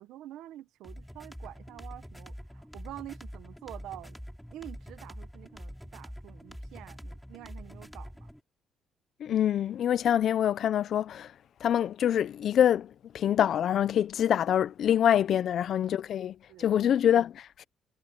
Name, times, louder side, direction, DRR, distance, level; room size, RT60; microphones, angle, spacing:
voice 1, 0.0-4.2 4.5-8.3 15.3-15.5 16.5-16.7, right 13 dB, 85° right, 1.5 m, -47 dB
sound 1, 0.8-8.4, equal, ahead, 6.6 m, -45 dB
voice 2, 9.2-11.3 11.6-12.9 13.1-17.6, left 10 dB, 65° left, 0.8 m, -25 dB
cardioid pair, 85°, 0 cm